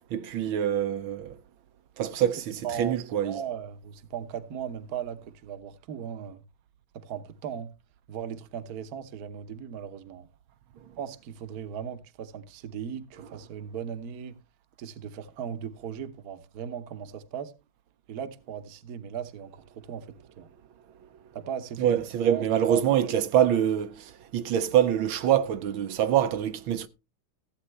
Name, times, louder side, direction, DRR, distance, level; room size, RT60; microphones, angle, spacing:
voice 1, 0.1-1.3 2.0-3.4 21.8-26.9, right 10 dB, 80° right, 1.5 m, -25 dB
voice 2, 2.6-3.0 3.2-6.4 6.9-7.7 8.1-10.3 11.0-14.4 14.8-17.5 18.1-20.1 20.4-20.5 21.3-23.1, right 8 dB, 55° right, 1.3 m, -37 dB
15.0 x 8.5 x 3.2 m
omnidirectional pair, 2.2 m